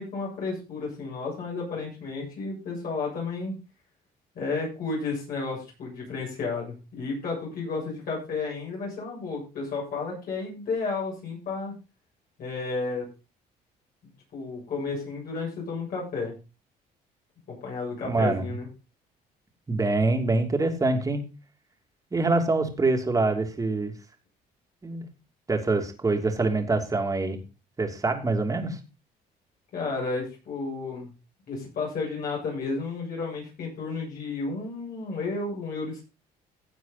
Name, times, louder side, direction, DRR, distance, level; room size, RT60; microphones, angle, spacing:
voice 1, 0.0-3.5 4.3-11.7 12.4-13.1 14.3-16.3 17.5-18.7 29.7-31.1 31.5-36.0, left 4 dB, 60° left, -3 dB, 7.8 m, -32 dB
voice 2, 18.0-18.4 19.7-21.2 22.1-23.9 24.8-25.0 25.5-27.4 27.8-28.8, right 3 dB, 20° right, 4 dB, 2.8 m, -25 dB
16.5 x 7.3 x 4.2 m, 0.31 s
cardioid pair, 110°, 17 cm